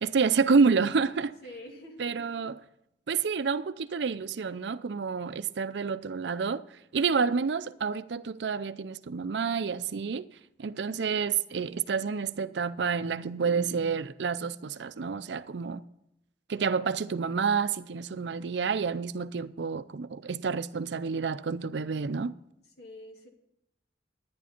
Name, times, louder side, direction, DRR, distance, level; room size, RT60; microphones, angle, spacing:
voice 1, 0.0-1.3 2.0-2.6 3.1-6.6 6.9-10.3 10.6-15.8 16.5-22.3, right 5 dB, 70° right, 0.5 m, -29 dB
voice 2, 1.4-2.2 22.8-23.3, left 1 dB, 60° left, 2.2 m, -46 dB
11.0 x 10.5 x 4.4 m
head